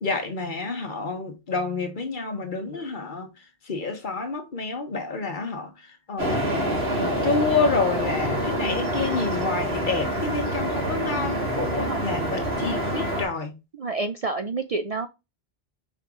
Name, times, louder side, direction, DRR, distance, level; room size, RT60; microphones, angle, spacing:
voice 1, 0.0-3.3 3.6-6.7 7.0-13.5, left 4 dB, 50° left, 1.3 m, -29 dB
sound 1, 6.2-13.2, equal, 75° right, 3.0 m, -26 dB
voice 2, 13.8-15.1, right 3 dB, 45° right, 0.5 m, -29 dB
5.6 x 4.6 x 3.7 m
omnidirectional pair, 1.1 m